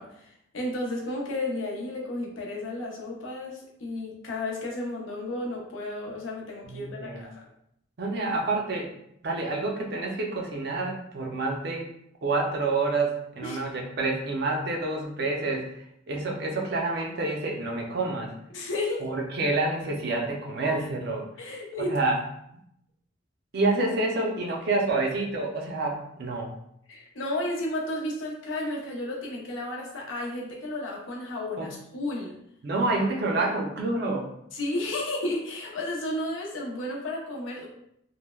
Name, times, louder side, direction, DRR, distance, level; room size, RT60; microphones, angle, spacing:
voice 1, 0.0-7.5 13.4-13.6 18.5-19.1 21.4-22.0 26.9-32.3 34.5-37.7, left 1 dB, 80° left, -1 dB, 0.6 m, -33 dB
voice 2, 6.7-7.3 8.0-8.9 9.2-11.9 12.2-15.7 16.1-18.3 19.0-21.3 21.9-22.2 23.5-26.6 31.6-31.7 32.6-34.3, right 2 dB, 55° right, 1 dB, 0.4 m, -28 dB
3.2 x 2.1 x 2.2 m, 0.75 s
head